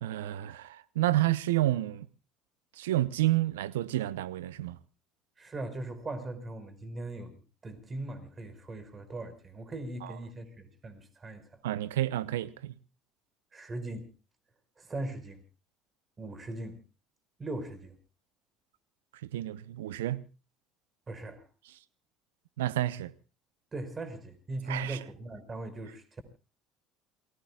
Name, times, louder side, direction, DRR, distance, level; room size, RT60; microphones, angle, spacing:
voice 1, 0.0-2.1 2.8-4.8 10.0-10.1 11.6-12.7 19.3-20.2 22.6-23.1 24.7-25.0, right 15 dB, 85° right, 0.8 m, -30 dB
voice 2, 5.4-11.6 13.5-14.1 14.8-15.4 16.2-16.8 17.4-17.9 21.1-21.4 23.7-26.2, right 2 dB, 30° right, 5.2 m, -39 dB
28.0 x 20.0 x 2.4 m
hypercardioid pair, 70°, 0 cm